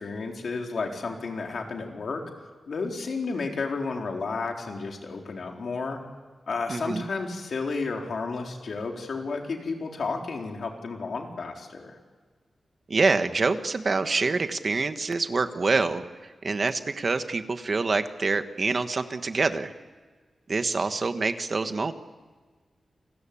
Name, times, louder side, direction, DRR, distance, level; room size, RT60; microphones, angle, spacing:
voice 1, 0.0-2.2 2.7-6.0 6.5-12.0, left 4 dB, 65° left, 2 dB, 4.1 m, -32 dB
voice 2, 6.7-7.0 12.9-19.7 20.5-21.9, right 3 dB, 40° right, 9 dB, 1.4 m, -26 dB
29.5 x 20.5 x 8.6 m, 1.5 s
wide cardioid pair, 165°, 0 cm